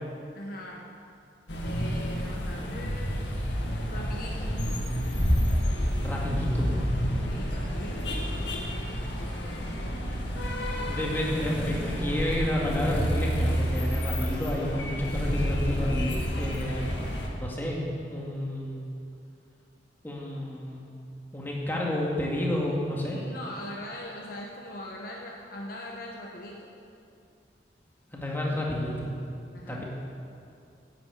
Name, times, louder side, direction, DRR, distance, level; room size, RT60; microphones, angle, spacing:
voice 1, 0.3-0.9 1.6-3.3 3.9-4.6 7.2-8.2 22.9-26.7 29.5-29.8, left 1 dB, 55° left, -1 dB, 1.1 m, -41 dB
sound 1, 1.5-17.3, equal, 85° left, 2.0 m, -29 dB
voice 2, 6.0-6.7 10.9-17.0 17.4-17.8 18.1-18.9 20.0-21.0 21.3-23.2 28.1-29.1 29.7-29.8, left 1 dB, 10° left, -3 dB, 2.1 m, -30 dB
10.5 x 8.9 x 8.3 m, 2.5 s
head